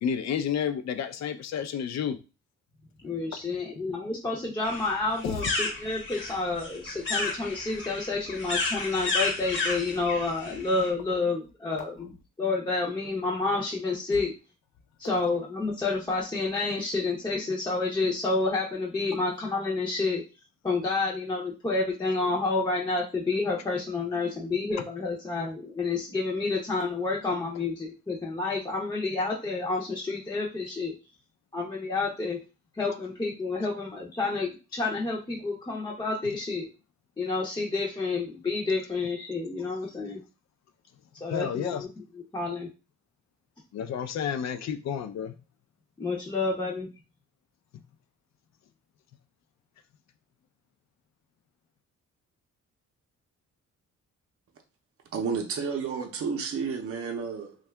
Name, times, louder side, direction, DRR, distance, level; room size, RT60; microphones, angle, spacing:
voice 1, 0.0-2.2 5.2-5.3 41.3-41.8 43.7-45.3, left 8 dB, 65° left, 0.5 m, -30 dB
voice 2, 3.0-12.1 12.4-14.3 15.0-20.2 20.6-30.9 31.5-32.4 32.7-36.7 37.2-40.2 41.2-42.7 46.0-46.9, left 3 dB, 15° left, 0.6 m, -29 dB
sound 1, 4.6-10.9, left 3 dB, 40° left, 0.9 m, -32 dB
voice 3, 55.1-57.6, right 5 dB, 50° right, 0.6 m, -31 dB
2.7 x 2.3 x 3.3 m
cardioid pair, 120°, 30 cm